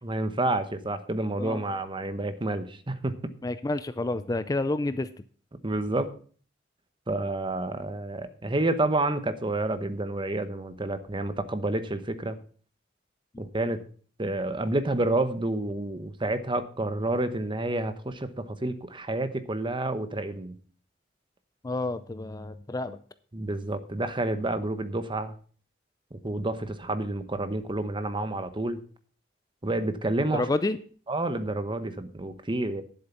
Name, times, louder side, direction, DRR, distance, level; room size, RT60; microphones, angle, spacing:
voice 1, 0.0-3.3 5.6-6.1 7.1-12.4 13.4-13.8 14.2-20.6 23.3-25.3 26.1-28.8 29.6-30.5 31.1-32.8, right 2 dB, 25° right, 11 dB, 1.0 m, -29 dB
voice 2, 3.4-5.1 13.3-13.4 21.6-23.0 30.3-30.8, left 2 dB, 20° left, 12 dB, 0.5 m, -29 dB
10.5 x 8.0 x 5.7 m, 0.44 s
head